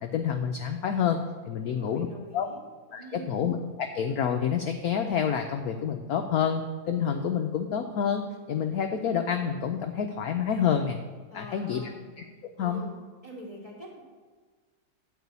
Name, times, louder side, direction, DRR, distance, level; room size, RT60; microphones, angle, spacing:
voice 1, 0.0-1.2 1.5-2.1 2.3-2.5 2.9-8.2 8.5-11.0 11.3-11.9 12.6-12.8, left 7 dB, 65° left, 5 dB, 0.9 m, -28 dB
voice 2, 1.6-2.6 2.9-3.4 11.3-12.1 12.6-13.0 13.2-14.0, equal, 15° right, -3 dB, 2.5 m, -44 dB
11.5 x 4.9 x 8.1 m, 1.4 s
omnidirectional pair, 2.1 m